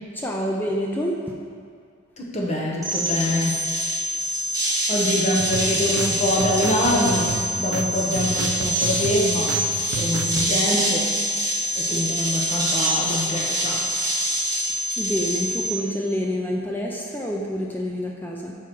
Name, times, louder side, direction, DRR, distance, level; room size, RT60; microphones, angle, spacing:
voice 1, 0.1-1.1 15.0-18.5, equal, 10° left, -1 dB, 0.4 m, -27 dB
voice 2, 2.2-3.6 4.9-9.6 9.9-11.2 11.7-13.8, left 1 dB, 30° left, -3 dB, 0.8 m, -24 dB
sound 1, 2.8-15.7, right 1 dB, 15° right, 1.1 m, -25 dB
sound 2, 5.4-10.5, right 4 dB, 90° right, 0.4 m, -32 dB
4.6 x 4.6 x 5.9 m, 2.2 s
head